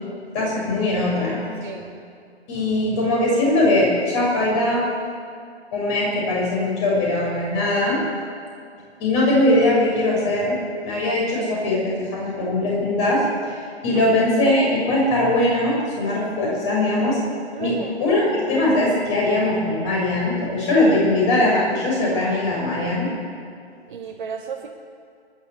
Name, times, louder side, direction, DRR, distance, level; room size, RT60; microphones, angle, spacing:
voice 1, 0.3-1.4 2.5-4.8 5.7-8.0 9.0-10.6 10.8-17.2 17.6-23.1, left 1 dB, 25° left, -3 dB, 6.6 m, -21 dB
voice 2, 1.1-1.9 13.9-14.5 17.5-18.0 23.9-24.7, right 6 dB, 45° right, -3 dB, 2.5 m, -34 dB
29.0 x 11.5 x 8.3 m, 2.3 s
figure-of-eight pair, 150°, 34 cm